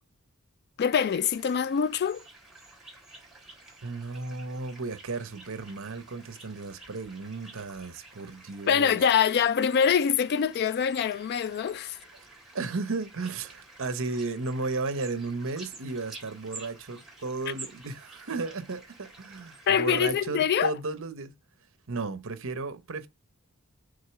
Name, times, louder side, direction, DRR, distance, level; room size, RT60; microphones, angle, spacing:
voice 1, 0.8-2.2 8.7-12.0 19.7-20.7, left 7 dB, 45° left, 0.3 m, -24 dB
sound 1, 1.0-19.8, right 3 dB, ahead, 3.4 m, -50 dB
voice 2, 3.8-9.0 12.5-21.3 21.9-23.1, right 3 dB, 60° right, 0.9 m, -34 dB
6.5 x 3.9 x 5.7 m
head